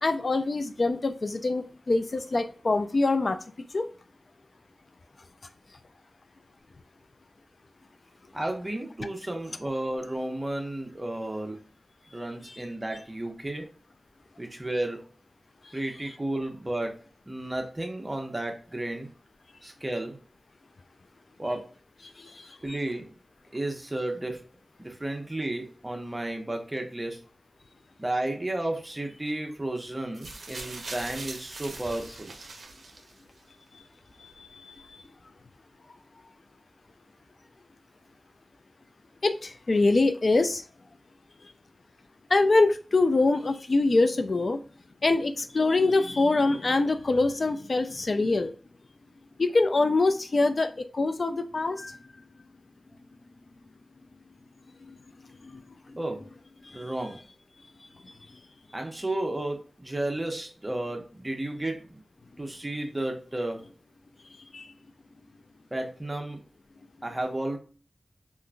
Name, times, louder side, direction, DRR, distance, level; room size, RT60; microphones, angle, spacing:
voice 1, 0.0-3.4 3.7-3.9 12.5-12.6 15.6-15.8 22.2-22.6 33.7-33.8 34.2-35.0 39.2-40.6 41.4-41.5 42.3-44.6 45.0-48.5 49.4-52.0 54.8-54.9 55.4-55.6 55.9-56.0 56.6-56.9 58.0-58.1 64.3-64.7, left 3 dB, 55° left, 8 dB, 0.3 m, -25 dB
voice 2, 8.3-11.6 12.1-13.7 14.4-15.0 15.7-17.0 17.3-19.1 19.6-20.2 21.4-21.7 22.6-23.1 23.5-24.4 24.8-27.2 28.0-32.3 56.0-56.3 56.7-57.2 58.7-62.0 62.4-63.6 65.7-66.4 67.0-67.6, right 1 dB, 25° right, 3 dB, 0.7 m, -32 dB
sound 1, 30.1-33.4 34.3-34.4, right 3 dB, 80° right, 0.5 m, -41 dB
3.7 x 2.5 x 2.2 m, 0.38 s
wide cardioid pair, 60°, 0 cm